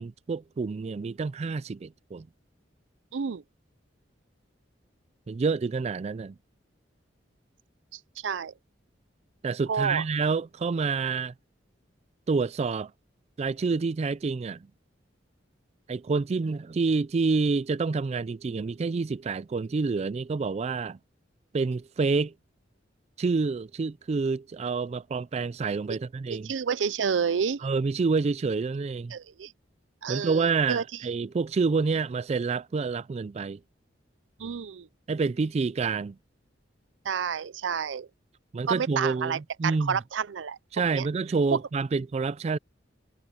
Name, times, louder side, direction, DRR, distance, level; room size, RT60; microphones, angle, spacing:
voice 1, 0.0-2.3 5.3-6.4 9.4-11.3 12.3-12.9 13.4-14.7 15.9-21.0 21.5-22.3 23.2-26.5 27.6-29.1 30.1-33.6 35.1-36.2 38.5-40.0 40.7-42.6, right 4 dB, 35° right, 0.3 m, -28 dB
voice 2, 3.1-3.4 7.9-8.5 9.7-10.0 26.3-27.6 29.1-29.5 30.0-30.8 34.4-34.9 37.0-38.1 38.7-40.6 40.9-41.1, right 6 dB, 90° right, 0.5 m, -30 dB
head